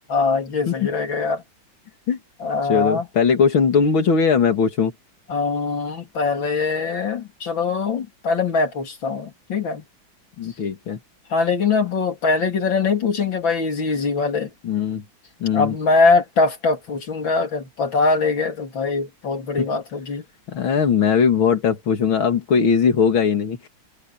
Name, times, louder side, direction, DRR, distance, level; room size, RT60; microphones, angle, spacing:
voice 1, 0.1-1.4 2.4-3.1 5.3-9.8 11.3-14.5 15.5-20.2, left 4 dB, 70° left, 3.9 m, -22 dB
voice 2, 2.7-4.9 10.4-11.0 14.6-15.0 15.4-15.7 20.5-23.7, left 6 dB, 90° left, 3.0 m, -19 dB
omnidirectional pair, 2.1 m